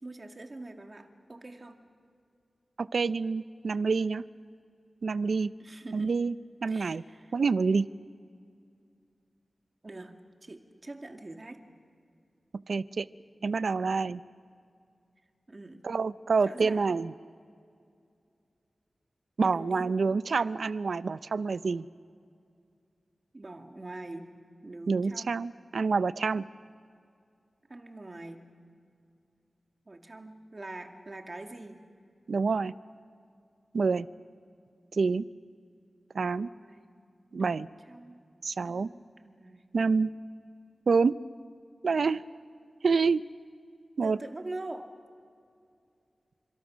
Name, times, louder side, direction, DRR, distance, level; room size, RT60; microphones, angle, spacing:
voice 1, 0.0-1.8 5.6-6.1 6.7-7.3 9.8-11.6 15.5-15.8 16.4-16.8 19.4-19.9 23.3-24.4 24.6-25.3 27.7-28.5 29.9-31.8 36.3-36.9 37.3-38.2 38.6-39.8 44.0-44.9, right 2 dB, 35° right, 4 dB, 2.0 m, -44 dB
voice 2, 2.8-4.2 5.0-5.5 5.9-6.3 6.6-7.0 7.3-7.9 12.7-13.1 13.4-14.2 15.8-17.1 19.4-21.9 24.9-26.4 32.3-32.7 33.7-34.1 34.9-35.2 36.1-36.5 37.3-37.7 38.4-38.9 39.7-40.1 40.9-41.2 41.8-42.2 42.8-43.2 44.0-44.2, right 4 dB, 80° right, 15 dB, 0.5 m, -27 dB
29.5 x 26.5 x 6.3 m, 2.4 s
wide cardioid pair, 100°, 0 cm